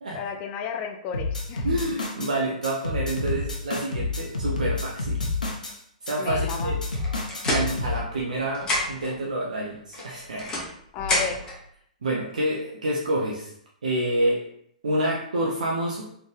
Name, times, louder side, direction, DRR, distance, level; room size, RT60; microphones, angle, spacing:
voice 1, 0.1-1.8 6.2-6.8 10.9-11.4, left 7 dB, 35° left, 4 dB, 0.5 m, -33 dB
sound 1, 1.1-2.3 2.6-5.7 6.1-8.0, left 3 dB, 80° left, 0.9 m, -29 dB
voice 2, 1.6-5.3 6.0-6.8 7.5-10.5 12.0-13.5 13.8-14.4 14.8-16.1, right 1 dB, 70° right, -3 dB, 0.7 m, -28 dB
sound 2, 6.9-8.3 8.5-9.2 9.9-11.6, left 1 dB, 15° left, 1.2 m, -29 dB
4.2 x 3.3 x 3.2 m, 0.68 s
figure-of-eight pair, 115°, 4 cm